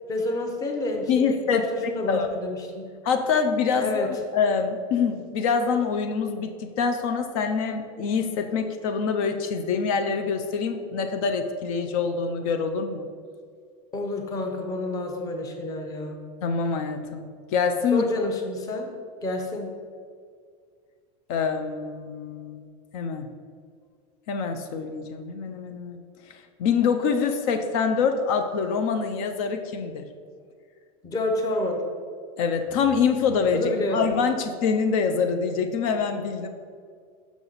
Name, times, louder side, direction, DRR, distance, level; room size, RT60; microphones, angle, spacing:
voice 1, 0.1-2.9 3.8-4.1 13.9-16.2 17.9-18.9 19.2-19.7 31.0-31.8 33.5-34.1, left 2 dB, 20° left, 3 dB, 0.7 m, -29 dB
voice 2, 1.1-1.7 2.1-2.3 3.0-4.1 4.3-13.1 16.4-18.1 21.3-22.7 22.9-23.3 24.3-26.0 26.6-30.0 32.4-36.5, left 5 dB, 70° left, 6 dB, 0.6 m, -25 dB
5.9 x 5.8 x 4.0 m, 2.1 s
supercardioid pair, 160°, 19 cm